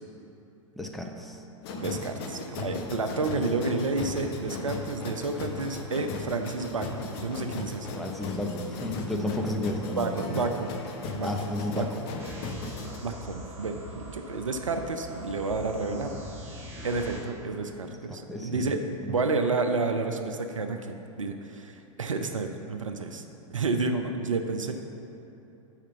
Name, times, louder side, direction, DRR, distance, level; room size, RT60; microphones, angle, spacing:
voice 1, 0.8-1.4 8.0-10.3 11.2-11.9 17.8-19.1, left 1 dB, ahead, 1 dB, 0.6 m, -33 dB
sound 1, 1.6-13.0, left 3 dB, 50° left, 0.9 m, -37 dB
voice 2, 1.8-7.9 10.0-10.7 11.1-11.8 13.0-16.2 16.5-18.8 19.1-23.2 23.5-24.7, right 3 dB, 80° right, 6 dB, 0.5 m, -30 dB
sound 2, 12.2-17.2, equal, 15° right, 1.7 m, -43 dB
5.8 x 5.0 x 6.7 m, 3.0 s
figure-of-eight pair, 95°, 16 cm